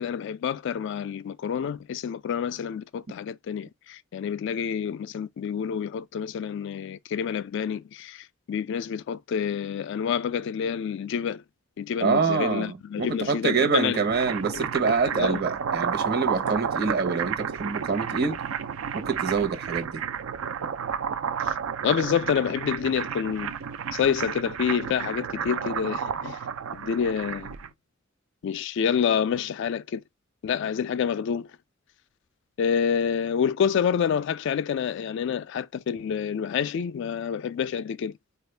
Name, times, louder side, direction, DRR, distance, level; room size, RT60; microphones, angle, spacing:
voice 1, 0.0-11.4 11.8-14.0 14.5-14.7 15.1-15.4 21.4-21.5 21.8-23.5 23.9-26.4 26.7-27.5 28.4-30.0 30.4-31.5 32.6-38.2, left 7 dB, 60° left, 0.3 m, -28 dB
voice 2, 12.0-18.4 18.9-20.0, right 5 dB, 50° right, 0.9 m, -26 dB
sound 1, 13.8-27.7, right 7 dB, 80° right, 0.4 m, -31 dB
4.4 x 2.4 x 3.2 m
head